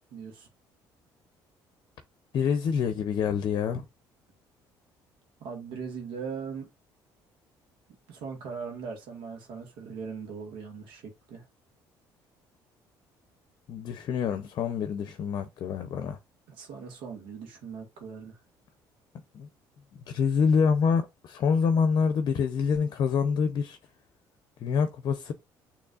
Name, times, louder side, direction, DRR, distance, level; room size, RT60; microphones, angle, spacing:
voice 1, 0.1-0.5 5.4-6.7 8.1-11.0 11.3-11.4 16.6-18.4, right 5 dB, 80° right, 1.5 m, -39 dB
voice 2, 2.3-3.9 13.7-16.2 19.3-19.5 19.9-23.8 24.6-25.3, left 6 dB, 55° left, 0.6 m, -26 dB
6.4 x 3.1 x 2.4 m
cardioid pair, 110°, 9 cm